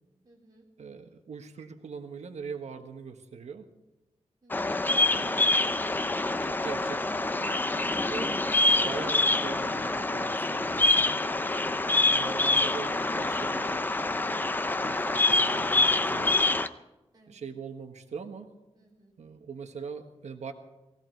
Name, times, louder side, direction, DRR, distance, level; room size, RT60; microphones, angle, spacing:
voice 1, 0.2-0.7 4.4-4.9 17.1-17.4 18.7-19.1, right 1 dB, 35° right, -3 dB, 3.6 m, -60 dB
voice 2, 0.8-3.7 5.1-6.0 6.4-7.6 8.0-8.5 8.8-11.1 11.9-13.8 14.3-16.4 17.3-18.5 19.2-20.5, right 5 dB, 80° right, 6 dB, 1.4 m, -42 dB
Bird vocalization bird call bird song, 4.5-16.7, left 2 dB, 15° left, 0.5 m, -26 dB
19.0 x 16.0 x 4.6 m, 1.0 s
wide cardioid pair, 155°, 12 cm